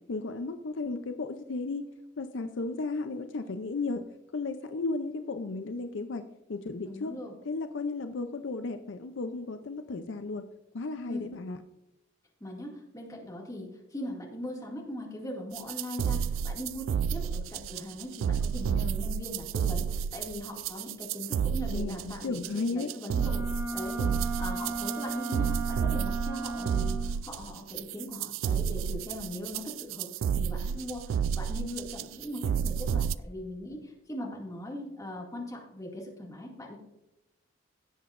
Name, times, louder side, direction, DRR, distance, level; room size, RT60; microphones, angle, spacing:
voice 1, 0.1-1.8 2.2-4.0 4.3-6.2 6.5-7.1 7.4-10.4 10.7-11.6 21.7-22.9, left 3 dB, 65° left, 8 dB, 0.5 m, -34 dB
voice 2, 6.8-7.3 11.1-11.3 12.4-36.8, left 1 dB, 15° left, -2 dB, 2.1 m, -40 dB
sound 1, 15.5-33.2, right 7 dB, 80° right, 0.3 m, -31 dB
Wind instrument woodwind instrument, 23.1-27.2, right 2 dB, 20° right, 0.9 m, -35 dB
16.5 x 7.8 x 2.5 m, 0.89 s
head